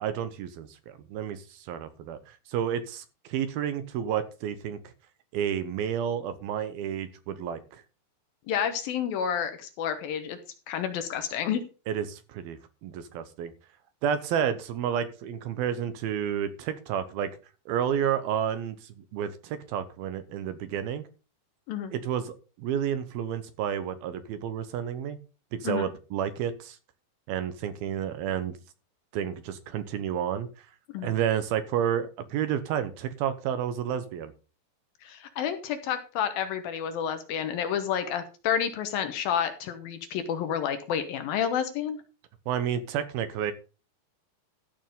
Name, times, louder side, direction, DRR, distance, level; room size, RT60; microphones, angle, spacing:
voice 1, 0.0-4.9 5.3-7.8 11.9-13.5 14.0-17.4 17.7-21.0 21.9-25.2 25.5-26.8 27.3-28.6 29.1-30.5 31.0-34.3 42.5-43.5, right 9 dB, 75° right, 12 dB, 2.6 m, -30 dB
voice 2, 8.5-10.4 10.7-11.6 21.7-21.9 25.6-25.9 30.9-31.1 35.0-42.0, left 8 dB, 70° left, 9 dB, 2.5 m, -30 dB
14.0 x 6.1 x 5.3 m, 0.34 s
omnidirectional pair, 4.8 m